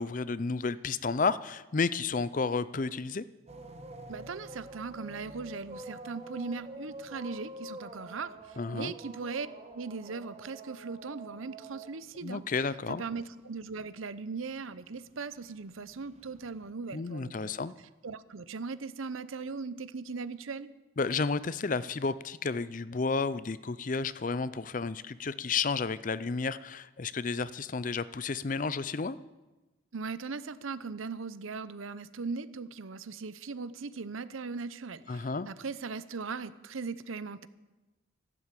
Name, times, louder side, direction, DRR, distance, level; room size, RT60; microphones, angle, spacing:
voice 1, 0.0-3.2 8.6-8.9 12.2-13.0 16.9-17.7 21.0-29.2 35.1-35.5, left 4 dB, 40° left, 16 dB, 0.5 m, -32 dB
sound 1, 3.5-13.5 13.7-16.7, right 1 dB, 30° right, 1.3 m, -47 dB
voice 2, 4.1-9.5 9.7-12.4 12.9-17.3 18.0-20.7 29.9-37.5, right 4 dB, 85° right, 15 dB, 0.8 m, -39 dB
14.0 x 12.0 x 8.3 m, 1.1 s
head